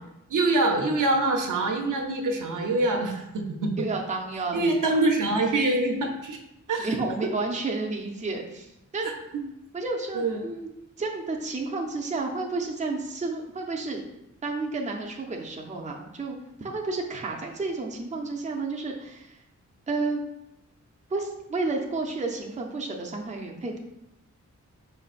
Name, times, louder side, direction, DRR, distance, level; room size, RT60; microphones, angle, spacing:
voice 1, 0.3-3.7 4.5-6.4 6.7-6.9 10.2-10.4, right 2 dB, 80° right, 2 dB, 0.8 m, -24 dB
voice 2, 3.8-5.0 6.8-9.1 9.7-10.7 11.0-14.0 14.4-16.3 16.6-19.4 19.9-20.2 21.1-23.8, right 3 dB, 25° right, 0 dB, 0.5 m, -31 dB
5.2 x 3.8 x 2.4 m, 0.87 s
wide cardioid pair, 140°, 31 cm